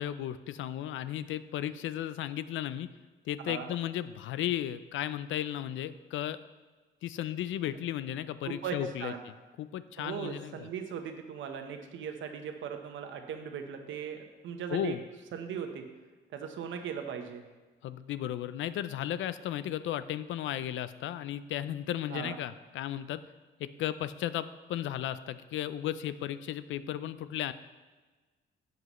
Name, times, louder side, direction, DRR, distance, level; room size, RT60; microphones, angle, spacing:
voice 1, 0.0-2.9 3.3-6.4 7.0-9.3 9.6-10.7 14.7-15.0 17.8-23.2 23.6-27.5, left 11 dB, 75° left, 14 dB, 0.5 m, -35 dB
voice 2, 8.4-9.2 10.0-15.0 15.3-15.9 16.3-17.4 22.1-22.4, right 7 dB, 75° right, 6 dB, 1.0 m, -38 dB
11.0 x 7.8 x 3.1 m, 1.3 s
cardioid pair, 90°, 20 cm